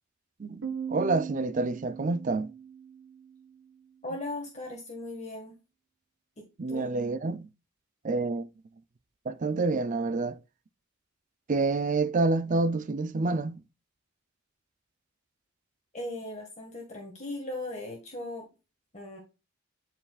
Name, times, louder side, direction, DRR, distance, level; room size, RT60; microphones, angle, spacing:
voice 1, 0.4-2.5 6.6-7.5 8.0-8.5 9.3-10.4 11.5-13.6, right 3 dB, 40° right, 0.5 m, -28 dB
Piano, 0.6-4.0, right 7 dB, 70° right, 1.3 m, -40 dB
voice 2, 4.0-5.6 6.4-6.9 15.9-18.5 18.9-19.2, left 2 dB, 35° left, 1.7 m, -38 dB
12.0 x 4.7 x 2.4 m
head